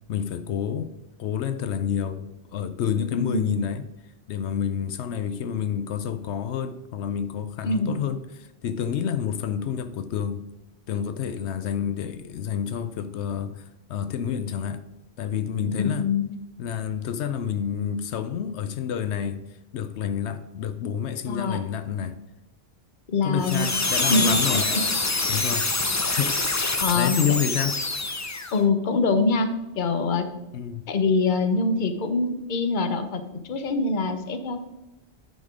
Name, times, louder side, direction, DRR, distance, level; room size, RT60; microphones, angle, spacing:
voice 1, 0.1-0.9 1.2-3.9 4.3-10.4 10.9-14.8 15.2-16.1 16.6-19.4 19.7-22.2 23.2-24.7 25.3-26.6 26.9-27.8 30.5-30.9, left 8 dB, 85° left, 0.9 m, -29 dB
voice 2, 3.1-3.5 7.6-8.0 15.8-16.2 21.3-21.6 23.1-23.7 24.1-24.8 25.3-25.5 26.8-27.2 28.3-30.2 30.9-34.7, left 3 dB, 50° left, 0.9 m, -24 dB
sound 1, 23.4-28.6, left 3 dB, 20° left, 0.5 m, -25 dB
10.5 x 4.4 x 5.0 m
omnidirectional pair, 1.1 m